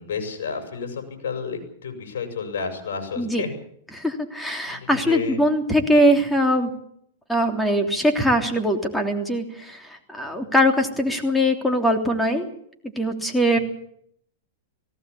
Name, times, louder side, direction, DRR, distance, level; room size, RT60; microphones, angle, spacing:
voice 1, 0.0-3.5 4.7-5.4 10.2-10.5 13.5-13.6, left 5 dB, 75° left, 5 dB, 7.2 m, -31 dB
voice 2, 3.9-6.7 7.3-12.5 13.0-13.6, equal, 5° left, 4 dB, 3.2 m, -21 dB
18.5 x 18.0 x 8.4 m, 0.67 s
hypercardioid pair, 125°, 0 cm